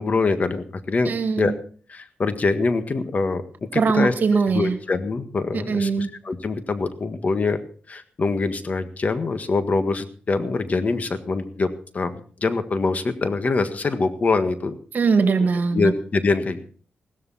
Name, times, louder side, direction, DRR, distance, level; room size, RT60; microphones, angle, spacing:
voice 1, 0.0-1.5 1.9-3.4 3.7-4.1 4.5-7.6 7.9-11.7 11.9-12.1 12.4-14.7 15.7-16.6, left 3 dB, 45° left, 10 dB, 1.6 m, -24 dB
voice 2, 1.0-1.5 3.7-4.8 5.5-6.1 14.9-15.9, right 4 dB, 65° right, 7 dB, 2.3 m, -21 dB
16.5 x 13.0 x 4.2 m, 0.43 s
cardioid pair, 75°, 3 cm